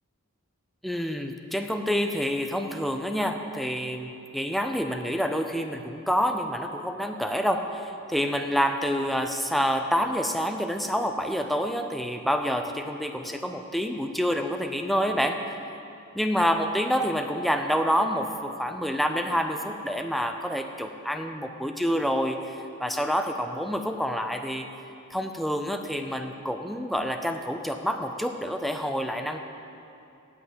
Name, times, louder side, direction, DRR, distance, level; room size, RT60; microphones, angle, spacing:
voice 1, 0.8-15.6 16.1-24.7 25.1-29.4, equal, ahead, 5 dB, 0.5 m, -27 dB
9.3 x 8.2 x 8.0 m, 2.7 s
head